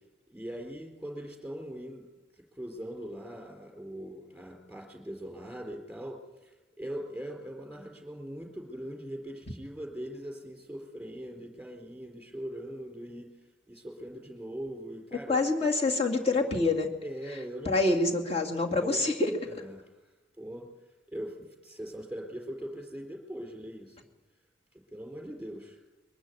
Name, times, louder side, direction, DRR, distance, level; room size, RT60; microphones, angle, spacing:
voice 1, 0.3-13.3 13.7-15.7 17.0-18.0 18.7-19.1 19.5-20.0 20.4-20.7 21.1-24.1 24.9-25.8, equal, 5° right, 1 dB, 4.3 m, -41 dB
voice 2, 15.3-16.9 17.6-19.3, left 2 dB, 30° left, 1 dB, 2.4 m, -26 dB
23.0 x 13.0 x 9.7 m, 1.1 s
head